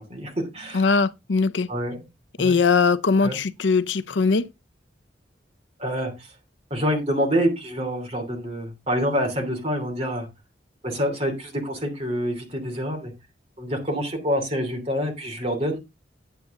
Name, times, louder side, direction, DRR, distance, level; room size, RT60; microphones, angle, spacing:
voice 1, 0.0-0.9 1.7-2.1 2.4-2.7 3.2-3.4 5.8-6.3 6.7-10.3 10.8-13.1 13.6-15.8, equal, 35° right, 2.9 m, -27 dB
voice 2, 0.7-1.7 2.4-4.5, left 4 dB, 80° left, 0.6 m, -20 dB
9.4 x 8.3 x 3.7 m
head